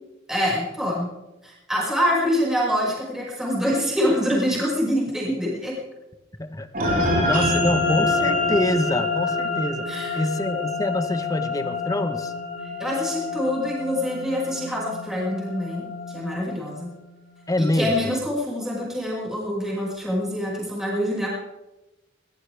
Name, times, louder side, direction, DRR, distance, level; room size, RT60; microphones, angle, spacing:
voice 1, 0.3-1.1 1.4-5.7 9.9-10.2 12.8-16.9 17.6-21.3, equal, 5° right, -5 dB, 6.0 m, -25 dB
voice 2, 6.4-9.8 10.1-12.3 17.5-18.2, left 1 dB, 20° left, 9 dB, 1.2 m, -26 dB
sound 1, 6.7-17.4, left 2 dB, 45° right, 4.8 m, -27 dB
21.0 x 18.0 x 3.5 m, 1.0 s
head